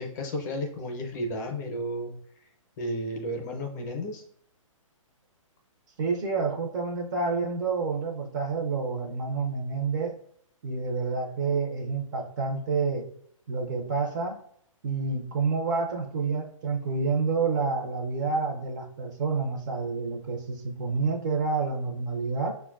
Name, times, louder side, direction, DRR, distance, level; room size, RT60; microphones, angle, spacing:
voice 1, 0.0-2.1 2.8-4.2, equal, 30° left, 1 dB, 0.5 m, -33 dB
voice 2, 6.0-10.2 10.6-13.1 13.5-14.4 14.8-22.6, right 4 dB, 35° right, 2 dB, 0.5 m, -28 dB
5.7 x 2.2 x 2.3 m, 0.66 s
hypercardioid pair, 150°, 18 cm